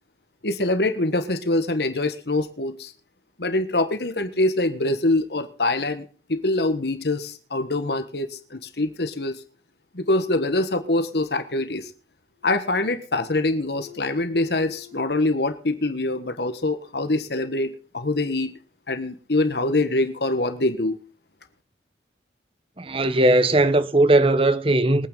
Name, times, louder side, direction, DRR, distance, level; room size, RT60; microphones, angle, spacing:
voice 1, 0.4-2.9 3.4-9.4 9.9-11.9 12.4-18.6 18.9-21.0, left 2 dB, 65° left, 1.5 m, -24 dB
sound 1, 11.8-11.9 12.2-13.1 13.4-15.0, left 11 dB, 85° right, 5.1 m, -48 dB
voice 2, 22.8-25.1, right 2 dB, 30° right, 1.1 m, -18 dB
23.0 x 9.1 x 4.0 m
head